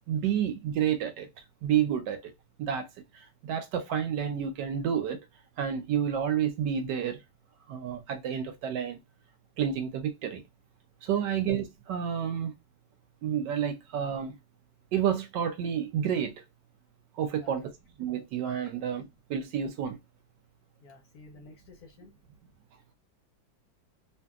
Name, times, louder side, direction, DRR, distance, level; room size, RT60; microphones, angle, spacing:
voice 1, 0.1-1.3 1.6-2.3 2.6-2.9 3.1-5.2 5.6-7.2 7.7-9.0 9.6-10.4 11.0-12.5 13.2-14.3 14.9-16.4 17.1-17.7 18.0-20.0, right 9 dB, 75° right, 1.1 m, -30 dB
voice 2, 20.8-22.1, left 3 dB, 65° left, 1.1 m, -52 dB
2.8 x 2.7 x 2.3 m
omnidirectional pair, 2.1 m